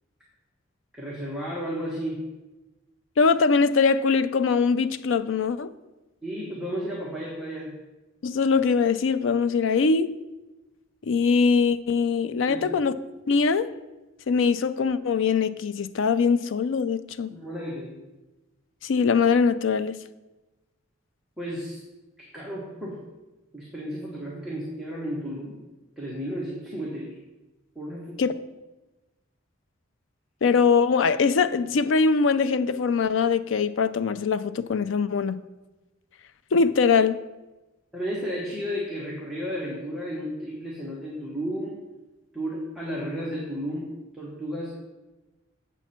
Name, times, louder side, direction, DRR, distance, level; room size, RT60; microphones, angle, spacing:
voice 1, 0.9-2.3 6.2-7.7 12.5-12.8 17.3-18.0 21.4-21.8 22.2-23.0 23.5-25.6 26.0-27.2 27.7-28.2 37.9-41.8 42.3-44.8, equal, 5° right, 1.4 m, -33 dB
voice 2, 3.2-5.7 8.2-10.1 11.1-12.9 13.3-13.7 14.3-17.3 18.8-20.0 28.2-28.3 30.4-35.4 36.5-37.2, left 5 dB, 70° left, 0.4 m, -22 dB
8.1 x 7.1 x 4.3 m
head